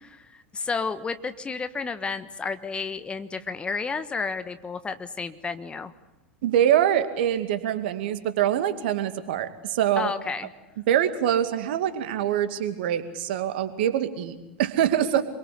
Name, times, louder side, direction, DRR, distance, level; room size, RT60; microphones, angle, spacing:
voice 1, 0.0-5.9 10.0-10.5, left 4 dB, 15° left, 11 dB, 1.3 m, -31 dB
voice 2, 6.4-10.1 10.9-15.2, right 10 dB, 55° right, 9 dB, 2.4 m, -24 dB
26.5 x 24.0 x 8.4 m, 1.0 s
figure-of-eight pair, 90°, 7 cm